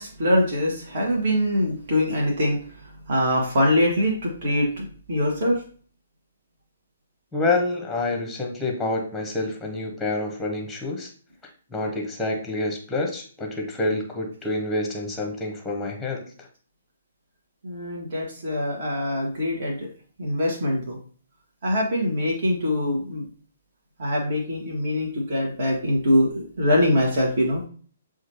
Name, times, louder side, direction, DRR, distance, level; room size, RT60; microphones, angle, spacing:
voice 1, 0.0-2.6 3.1-5.6 17.6-19.8 20.2-21.0 21.6-23.2 24.0-27.6, left 1 dB, 50° right, -1 dB, 1.3 m, -23 dB
voice 2, 7.3-11.1 11.7-16.2, left 2 dB, 5° left, 2 dB, 0.9 m, -27 dB
7.2 x 2.4 x 2.8 m, 0.43 s
figure-of-eight pair, 125°, 0 cm